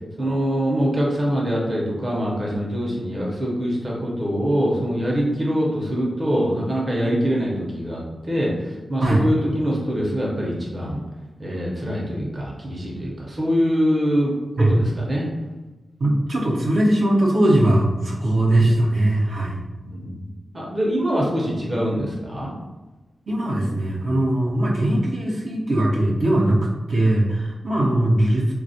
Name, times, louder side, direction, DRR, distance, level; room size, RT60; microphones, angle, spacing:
voice 1, 0.2-11.0 11.4-15.3 19.8-20.2 20.5-22.5, equal, 35° right, -3 dB, 0.7 m, -24 dB
voice 2, 16.0-19.6 23.3-28.5, right 1 dB, 70° right, -5 dB, 0.7 m, -20 dB
3.3 x 2.3 x 2.6 m, 1.1 s
wide cardioid pair, 110°, 0 cm